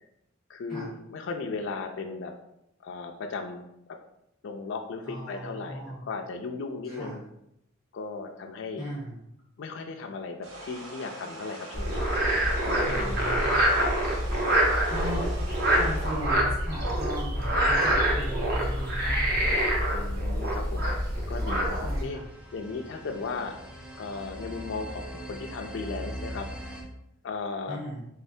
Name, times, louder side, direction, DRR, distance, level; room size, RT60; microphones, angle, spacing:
voice 1, 0.5-2.3 2.8-3.7 4.4-7.2 7.9-8.8 9.6-12.0 12.6-13.3 19.9-20.9 21.3-22.2 22.5-23.6 24.0-26.7 27.2-27.8, left 4 dB, 65° left, 4 dB, 0.4 m, -36 dB
voice 2, 5.1-6.0 6.8-7.2 8.8-9.2 12.8-13.6 14.9-15.3 15.7-19.6 21.8-22.3 27.7-28.0, equal, 30° right, -9 dB, 1.0 m, -37 dB
sound 1, 10.4-16.3, right 1 dB, 85° right, 0.7 m, -42 dB
Frog, 11.7-22.0, right 1 dB, 50° right, 0.8 m, -26 dB
sound 2, 21.4-26.8, right 1 dB, 5° right, 0.5 m, -41 dB
3.7 x 3.2 x 2.7 m, 0.79 s
head